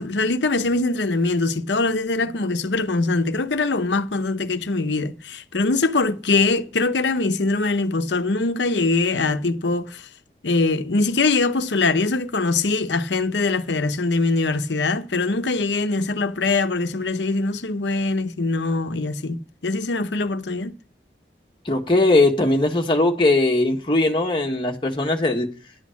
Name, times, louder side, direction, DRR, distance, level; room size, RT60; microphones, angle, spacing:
voice 1, 0.0-10.1 10.4-19.4 19.6-20.7, left 3 dB, 90° left, 0.9 m, -22 dB
voice 2, 21.6-25.5, left 2 dB, 30° left, 1.5 m, -19 dB
11.5 x 8.4 x 7.2 m
head